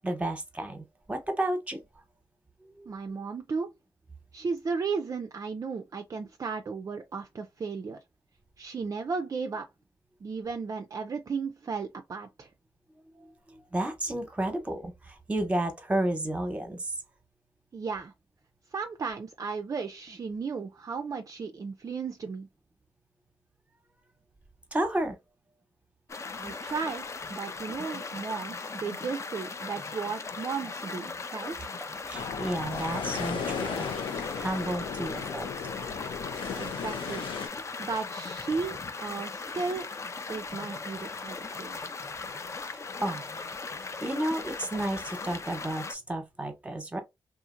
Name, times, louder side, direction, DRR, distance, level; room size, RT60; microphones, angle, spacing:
voice 1, 0.0-1.9 2.6-2.9 13.1-16.9 24.7-25.2 32.1-33.9 34.4-35.8 43.0-43.3 43.8-47.0, right 1 dB, 15° right, 0.9 m, -32 dB
voice 2, 2.9-3.7 4.3-8.0 8.6-9.7 10.2-12.5 17.7-18.1 18.7-22.5 26.4-31.7 36.6-37.3 37.8-39.9 40.3-41.7, right 5 dB, 40° right, 0.3 m, -35 dB
sound 1, 26.1-45.9, left 4 dB, 35° left, 0.4 m, -38 dB
sound 2, 32.1-37.5, left 6 dB, 80° left, 0.6 m, -35 dB
2.7 x 2.4 x 2.5 m
cardioid pair, 55°, 9 cm